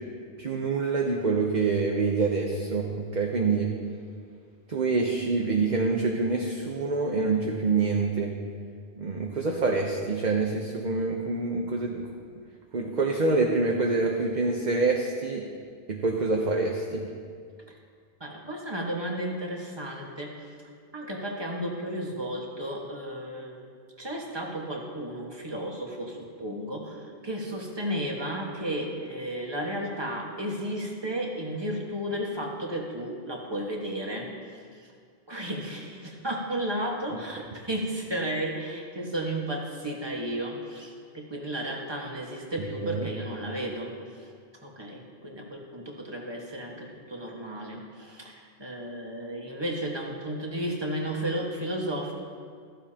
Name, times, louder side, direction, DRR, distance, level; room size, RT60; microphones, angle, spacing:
voice 1, 0.4-3.7 4.7-8.3 9.0-12.1 12.7-15.4 15.9-17.0 42.8-43.1, right 3 dB, 45° right, 1 dB, 1.0 m, -26 dB
voice 2, 18.2-20.5 20.9-23.6 24.0-34.6 35.3-44.3 44.6-52.1, right 1 dB, 25° right, -1 dB, 1.6 m, -33 dB
15.5 x 14.0 x 2.9 m, 2.1 s
omnidirectional pair, 1.1 m